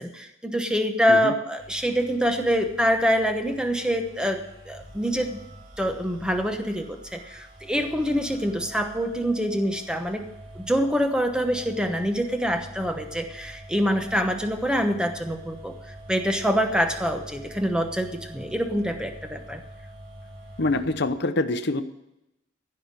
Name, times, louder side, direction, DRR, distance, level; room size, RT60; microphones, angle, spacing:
voice 1, 0.0-5.4 5.8-10.3 10.5-19.6, equal, 5° right, 5 dB, 1.0 m, -25 dB
sound 1, 1.6-21.1, right 1 dB, 90° right, 5.7 m, -45 dB
voice 2, 20.6-21.8, left 2 dB, 55° left, 10 dB, 0.9 m, -25 dB
15.5 x 5.8 x 8.1 m, 0.87 s
head